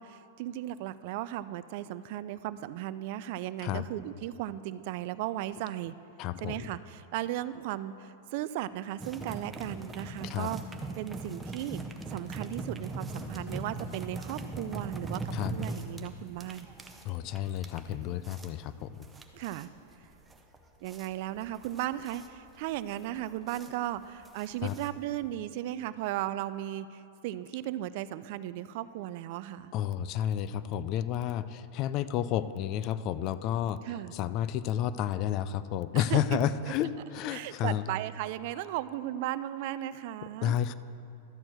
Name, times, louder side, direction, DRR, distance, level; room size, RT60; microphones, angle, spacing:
voice 1, 0.0-5.9 6.4-10.6 11.0-11.8 12.1-16.7 19.3-19.7 20.8-29.7 33.8-34.1 35.9-36.4 37.3-40.5, right 13 dB, 50° right, 15 dB, 0.3 m, -36 dB
voice 2, 6.2-6.7 10.2-10.5 15.3-15.5 17.0-18.9 24.6-24.7 29.7-33.8 34.1-37.9 40.4-40.7, left 10 dB, 35° left, 14 dB, 0.3 m, -31 dB
sound 1, 9.0-25.3, right 2 dB, 10° right, 0.6 m, -41 dB
12.5 x 4.5 x 7.6 m, 2.7 s
supercardioid pair, 155°, 0 cm